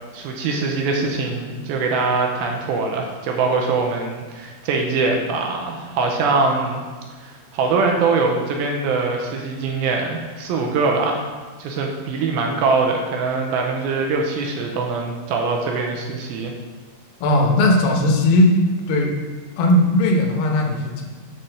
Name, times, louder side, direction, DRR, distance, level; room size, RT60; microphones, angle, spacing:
voice 1, 0.1-6.8 7.2-11.3 11.6-16.5, right 4 dB, 80° right, 1 dB, 2.5 m, -22 dB
voice 2, 17.2-18.6 18.9-19.1 19.6-21.0, left 1 dB, 75° left, 2 dB, 2.6 m, -17 dB
7.8 x 4.3 x 6.6 m, 1.4 s
omnidirectional pair, 4.5 m